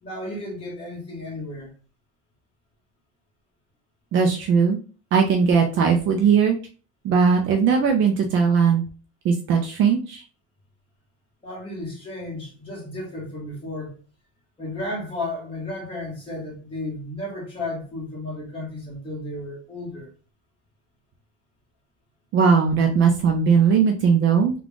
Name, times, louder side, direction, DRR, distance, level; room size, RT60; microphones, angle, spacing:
voice 1, 0.0-1.7 11.4-13.9 14.6-20.1, left 2 dB, 15° left, 1.6 m, -33 dB
voice 2, 4.1-4.8 5.1-6.6 7.0-8.8 9.2-10.2 22.3-24.5, right 6 dB, 40° right, 0.5 m, -19 dB
3.6 x 2.4 x 3.6 m
cardioid pair, 160°, 31 cm